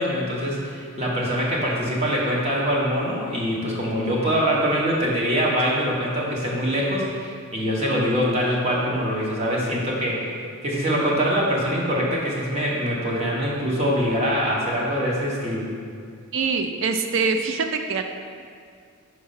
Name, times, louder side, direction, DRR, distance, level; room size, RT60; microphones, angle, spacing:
voice 1, 0.0-10.3 10.6-15.7, equal, 30° right, -4 dB, 1.2 m, -24 dB
voice 2, 16.3-18.0, right 4 dB, 55° right, 6 dB, 0.4 m, -24 dB
5.3 x 4.7 x 5.6 m, 2.3 s
head